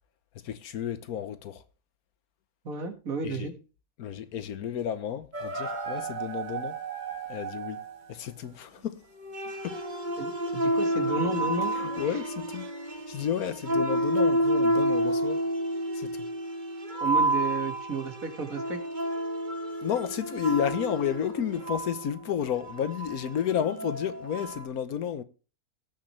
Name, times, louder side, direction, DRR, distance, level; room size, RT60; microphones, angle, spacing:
voice 1, 0.4-1.6 3.2-3.5 4.0-6.8 7.3-7.8 8.1-9.0 9.6-9.8 11.7-12.7 13.1-15.4 15.9-16.3 19.8-25.2, left 9 dB, 75° left, 1.3 m, -31 dB
voice 2, 2.6-3.5 10.2-11.8 17.0-18.8, right 3 dB, 65° right, 2.3 m, -32 dB
sound 1, 5.3-8.0 9.2-24.6, right 1 dB, 35° right, 1.4 m, -30 dB
18.0 x 6.5 x 3.2 m
omnidirectional pair, 1.6 m